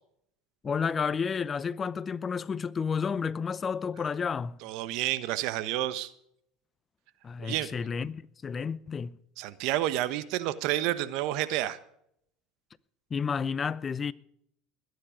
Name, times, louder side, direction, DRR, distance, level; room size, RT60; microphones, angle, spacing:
voice 1, 0.6-4.6 7.2-9.2 13.1-14.1, left 6 dB, 30° left, 0.6 m, -31 dB
voice 2, 4.6-6.1 7.4-7.7 9.4-11.8, right 14 dB, 65° right, 1.1 m, -30 dB
21.0 x 10.0 x 5.1 m
supercardioid pair, 95°, 0 cm